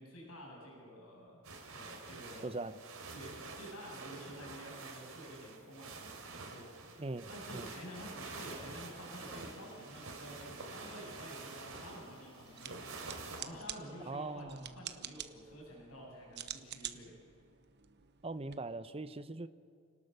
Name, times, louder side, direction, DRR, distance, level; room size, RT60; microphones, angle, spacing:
voice 1, 0.0-1.4 1.7-2.5 3.1-17.1, equal, 75° left, -3 dB, 7.8 m, -50 dB
sound 1, 1.4-13.4, right 3 dB, 70° right, 3.3 m, -48 dB
voice 2, 2.4-2.8 7.0-7.7 14.0-14.6 18.2-19.5, right 2 dB, 25° right, 12 dB, 0.7 m, -41 dB
sound 2, 7.9-14.1, left 2 dB, 20° left, 1.8 m, -60 dB
sound 3, 12.4-18.5, right 11 dB, 50° right, 1.0 m, -48 dB
29.0 x 19.0 x 6.7 m, 2.2 s
head